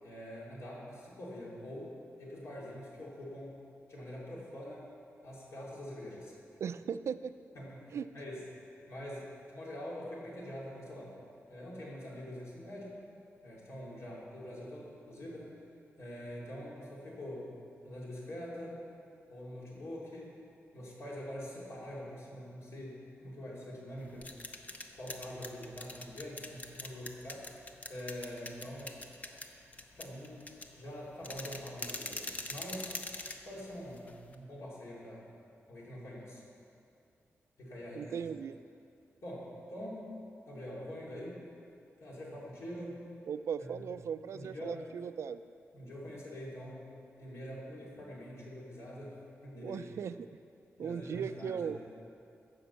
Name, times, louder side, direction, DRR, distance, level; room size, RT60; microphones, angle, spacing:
voice 1, 0.0-3.6 3.9-4.9 5.2-6.3 7.5-8.5 8.9-11.1 11.5-13.0 13.4-15.5 16.0-17.5 17.8-18.8 19.3-20.4 20.7-24.3 24.8-27.5 27.9-29.0 29.9-33.0 33.4-35.3 35.7-36.4 37.6-38.2 39.2-40.1 40.5-41.4 42.0-43.1 43.6-43.9 44.3-44.8 45.7-46.9 47.2-49.9 50.8-51.8, equal, 70° left, -5 dB, 3.0 m, -44 dB
voice 2, 6.6-7.3 7.9-8.1 38.0-38.6 43.3-45.4 49.6-50.2 50.8-51.8, right 7 dB, 70° right, 13 dB, 0.3 m, -37 dB
sound 1, 24.0-34.4, left 2 dB, 30° left, 0.7 m, -44 dB
15.0 x 5.3 x 6.9 m, 2.5 s
wide cardioid pair, 160°, 5 cm